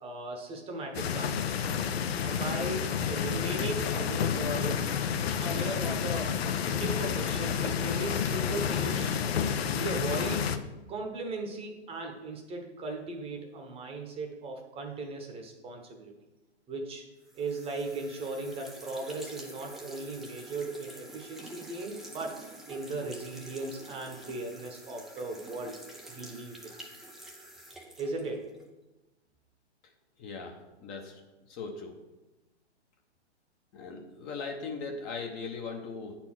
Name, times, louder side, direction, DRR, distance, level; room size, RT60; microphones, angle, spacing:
voice 1, 0.0-1.7 2.2-4.9 5.4-6.4 6.8-9.2 9.6-10.5 10.9-16.1 16.7-17.0 17.3-22.4 22.7-25.7 26.1-26.8 28.0-28.6, right 2 dB, 15° right, 3 dB, 1.0 m, -37 dB
sound 1, 0.9-10.6, left 7 dB, 60° left, 0.7 m, -30 dB
sound 2, 17.3-28.7, right 1 dB, ahead, 0.4 m, -48 dB
voice 2, 30.2-31.2 31.5-32.0 33.7-36.2, left 4 dB, 25° left, 2 dB, 0.9 m, -39 dB
8.7 x 4.4 x 5.9 m, 1.1 s
hypercardioid pair, 125°, 35 cm